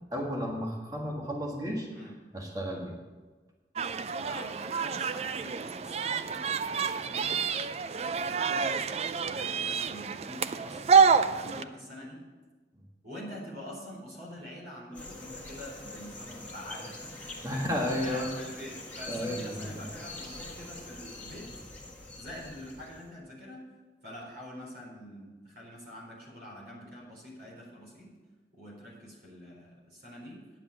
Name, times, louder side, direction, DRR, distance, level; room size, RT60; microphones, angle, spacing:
voice 1, 0.1-1.9 2.3-3.0 17.4-18.3 19.1-19.8, equal, 20° right, -1 dB, 1.6 m, -33 dB
sound 1, 3.8-11.6, right 6 dB, 35° right, 0.3 m, -28 dB
voice 2, 4.1-7.5 8.3-10.8 11.2-12.3 13.0-21.5 22.2-23.7 24.0-28.1 28.5-30.4, left 1 dB, 60° right, -3 dB, 4.2 m, -45 dB
sound 2, 14.9-23.1, left 2 dB, 10° left, 1.5 m, -44 dB
10.0 x 7.0 x 7.3 m, 1.3 s
head